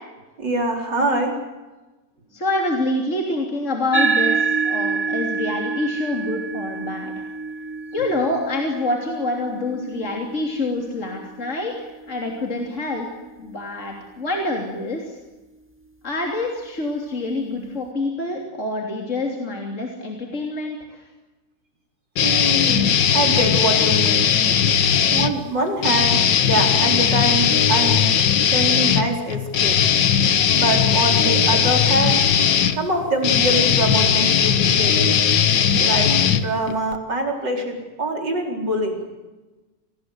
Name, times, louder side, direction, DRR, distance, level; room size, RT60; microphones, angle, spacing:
voice 1, 0.4-1.3 22.2-24.3 25.1-26.2 26.4-28.1 28.5-29.8 30.5-32.2 32.8-35.1 35.8-39.0, right 1 dB, 80° right, 2 dB, 5.1 m, -24 dB
voice 2, 2.3-7.1 7.9-13.1 13.4-15.2 16.0-21.1, left 2 dB, 40° left, 1 dB, 3.5 m, -26 dB
sound 1, 3.9-12.7, right 5 dB, 5° right, 1.8 m, -27 dB
sound 2, 22.2-25.3 25.8-37.0, left 8 dB, 85° left, 1.9 m, -18 dB
28.5 x 19.5 x 8.1 m, 1.2 s
omnidirectional pair, 1.9 m